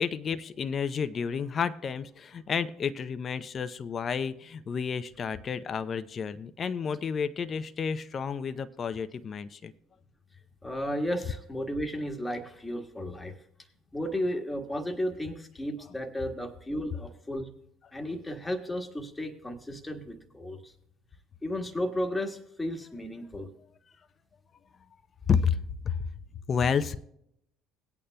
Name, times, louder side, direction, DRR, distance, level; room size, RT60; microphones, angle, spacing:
voice 1, 0.0-9.7 25.3-25.6 25.8-26.0 26.5-27.0, left 6 dB, 40° left, 12 dB, 0.6 m, -30 dB
voice 2, 10.6-13.3 13.9-17.5 17.9-20.7 21.4-23.5, equal, 10° left, 3 dB, 1.5 m, -33 dB
18.5 x 8.7 x 2.3 m, 0.74 s
hypercardioid pair, 65°, 0 cm